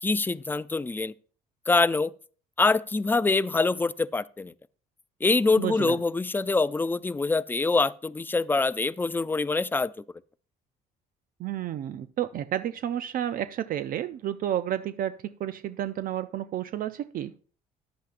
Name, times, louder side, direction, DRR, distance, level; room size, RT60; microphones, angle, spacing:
voice 1, 0.0-1.1 1.7-2.1 2.6-4.5 5.2-9.9, left 3 dB, 10° left, 0.4 m, -25 dB
voice 2, 5.6-6.0 11.4-17.3, right 11 dB, 55° right, 0.5 m, -31 dB
14.0 x 10.5 x 2.5 m
cardioid pair, 110°, 17 cm